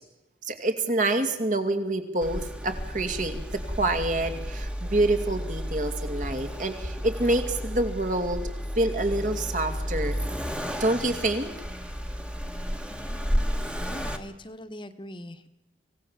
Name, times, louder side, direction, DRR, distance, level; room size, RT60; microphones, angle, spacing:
voice 1, 0.4-8.5 8.8-10.2 10.8-11.5, right 2 dB, 45° right, 8 dB, 2.4 m, -27 dB
Accelerating revving vroom, 2.2-14.2, equal, 5° right, 1.4 m, -32 dB
voice 2, 12.9-13.2 13.5-15.5, left 1 dB, 25° left, 9 dB, 1.3 m, -42 dB
26.0 x 17.0 x 7.3 m, 0.96 s
head